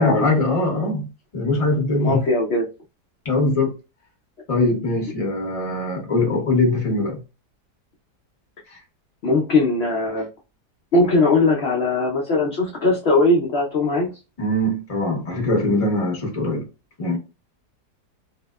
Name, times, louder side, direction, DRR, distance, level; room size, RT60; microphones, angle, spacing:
voice 1, 0.0-2.2 3.2-3.7 4.5-7.2 14.4-16.7 17.0-17.2, left 2 dB, 30° left, 0.7 m, -22 dB
voice 2, 2.0-2.6 9.2-10.3 10.9-14.1, left 2 dB, 65° left, 0.6 m, -19 dB
2.7 x 2.0 x 2.2 m
omnidirectional pair, 1.7 m